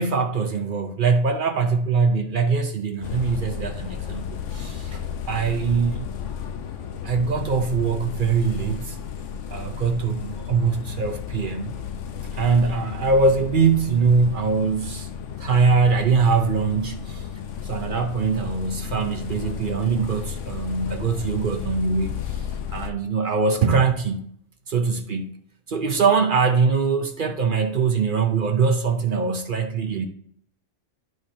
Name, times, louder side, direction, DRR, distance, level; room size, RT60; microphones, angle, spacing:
voice 1, 0.0-5.0 5.3-6.1 7.0-9.0 9.5-11.8 12.3-15.1 15.4-17.3 17.6-24.3 24.7-25.4 25.7-30.1, right 5 dB, 50° right, 0.7 m, -22 dB
sound 1, 3.0-22.9, left 8 dB, 75° left, 1.0 m, -33 dB
12.0 x 4.2 x 2.6 m
omnidirectional pair, 1.3 m